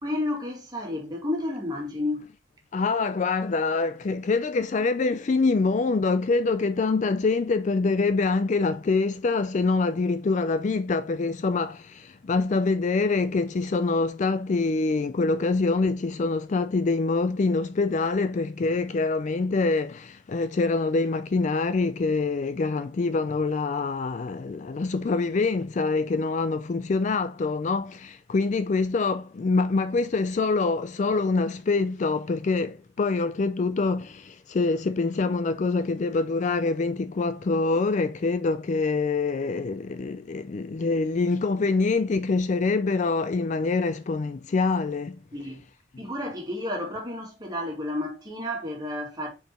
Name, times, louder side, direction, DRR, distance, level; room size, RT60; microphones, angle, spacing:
voice 1, 0.0-2.3 45.3-45.6 46.0-49.3, left 1 dB, 20° right, 2.2 m, -31 dB
voice 2, 2.7-45.2, left 3 dB, 40° left, 0.3 m, -25 dB
5.2 x 4.7 x 4.3 m
head